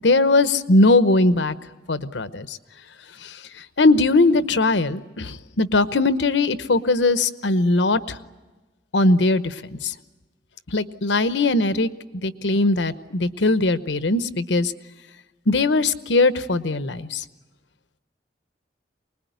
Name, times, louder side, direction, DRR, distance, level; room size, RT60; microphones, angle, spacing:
voice 1, 0.0-1.5 1.9-2.6 3.2-3.4 3.8-8.2 8.9-9.9 10.7-11.9 12.2-14.7 15.5-17.2, left 2 dB, 85° left, 12 dB, 1.0 m, -20 dB
24.5 x 20.5 x 9.4 m, 1.2 s
head